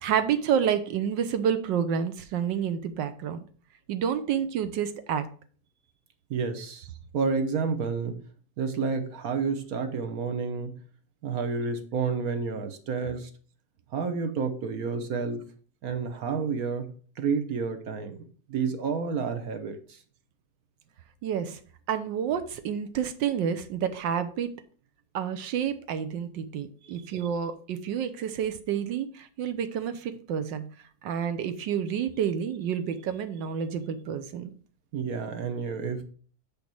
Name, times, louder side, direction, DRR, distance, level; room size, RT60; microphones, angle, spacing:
voice 1, 0.0-3.4 3.9-5.3 21.2-21.6 21.9-24.5 25.1-30.6 31.0-34.5, right 8 dB, 75° right, 10 dB, 1.5 m, -29 dB
voice 2, 6.3-6.8 7.1-8.2 8.6-10.8 11.2-13.3 13.9-15.4 15.8-16.9 17.2-18.2 18.5-19.8 34.9-36.0, right 5 dB, 55° right, 7 dB, 1.3 m, -30 dB
7.2 x 5.3 x 4.6 m, 0.44 s
omnidirectional pair, 2.1 m